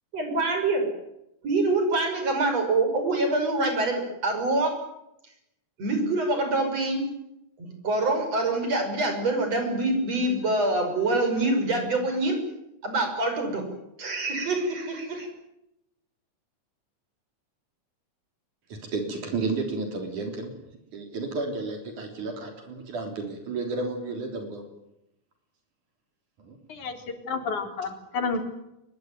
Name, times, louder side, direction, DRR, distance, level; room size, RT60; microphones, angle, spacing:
voice 1, 0.1-0.9 1.4-4.8 5.8-7.0 7.8-12.4 12.8-13.6 14.0-15.3, right 2 dB, 55° right, 5 dB, 7.0 m, -25 dB
voice 2, 18.7-20.5 20.9-24.6 26.4-26.6, right 3 dB, 80° right, 4 dB, 5.0 m, -32 dB
voice 3, 27.2-28.4, left 4 dB, 80° left, 5 dB, 5.0 m, -30 dB
23.5 x 21.5 x 9.5 m, 0.85 s
omnidirectional pair, 3.5 m